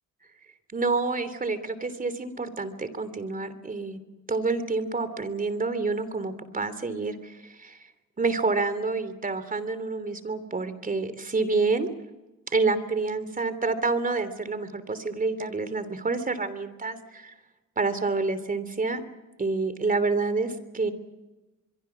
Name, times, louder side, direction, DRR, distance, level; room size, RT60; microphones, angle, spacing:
voice 1, 0.7-4.0 4.3-7.8 8.2-11.9 12.5-17.3 17.8-19.0 19.4-20.9, right 3 dB, 30° right, 12 dB, 3.2 m, -28 dB
24.5 x 23.5 x 6.1 m, 1.1 s
cardioid pair, 90°, 30 cm